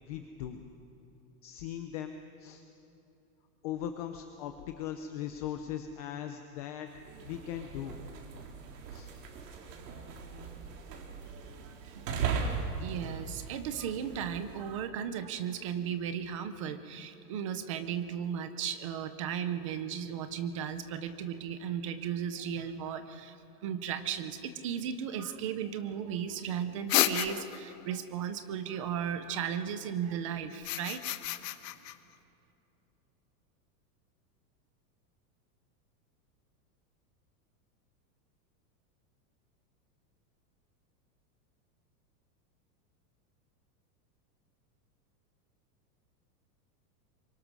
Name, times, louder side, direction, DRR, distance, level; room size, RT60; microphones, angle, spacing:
voice 1, 0.1-0.6 1.4-2.6 3.6-6.9 7.2-8.0 8.9-9.1, left 10 dB, 25° left, 7 dB, 0.6 m, -39 dB
sound 1, 6.9-14.7, right 5 dB, 85° right, 3.7 m, -39 dB
voice 2, 11.6-12.2 12.8-23.4 23.6-31.2, right 8 dB, 20° right, 10 dB, 0.5 m, -36 dB
sound 2, 26.9-27.7 30.5-31.9, left 13 dB, 90° left, 1.2 m, -30 dB
27.0 x 24.0 x 6.1 m, 2.8 s
supercardioid pair, 180°, 48 cm